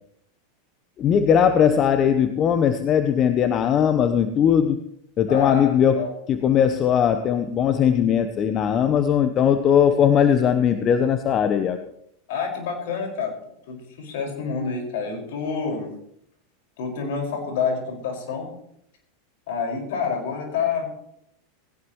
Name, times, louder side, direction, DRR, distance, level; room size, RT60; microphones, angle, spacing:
voice 1, 1.0-4.8 5.2-11.8, left 8 dB, 35° left, 9 dB, 1.0 m, -19 dB
voice 2, 5.3-6.1 12.3-13.3 13.7-15.9 16.8-18.5 19.5-20.8, left 5 dB, 65° left, 2 dB, 5.7 m, -28 dB
19.0 x 17.0 x 3.2 m, 0.74 s
hypercardioid pair, 90°, 0 cm